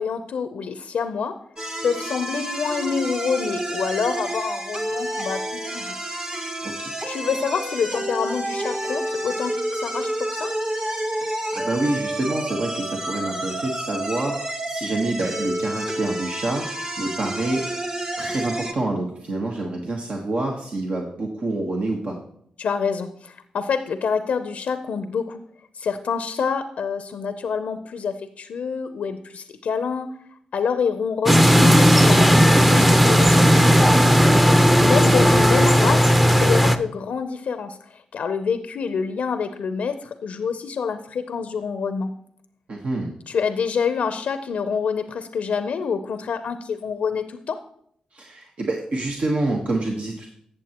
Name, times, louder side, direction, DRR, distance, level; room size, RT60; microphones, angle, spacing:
voice 1, 0.0-1.3 1.8-5.9 7.1-10.5 22.6-25.4 25.8-30.1 30.5-33.5 34.8-37.8 38.1-42.1 43.3-47.6, left 6 dB, 75° left, 10 dB, 0.6 m, -27 dB
sound 1, 1.6-18.7, right 1 dB, 35° right, 1.4 m, -29 dB
voice 2, 11.1-17.6 18.2-22.2 34.1-34.6 42.7-43.1 48.1-50.3, right 2 dB, 60° right, 0 dB, 1.3 m, -27 dB
sound 2, 31.3-36.8, equal, 5° right, 0.7 m, -15 dB
15.0 x 6.8 x 3.0 m, 0.68 s
supercardioid pair, 45°, 2 cm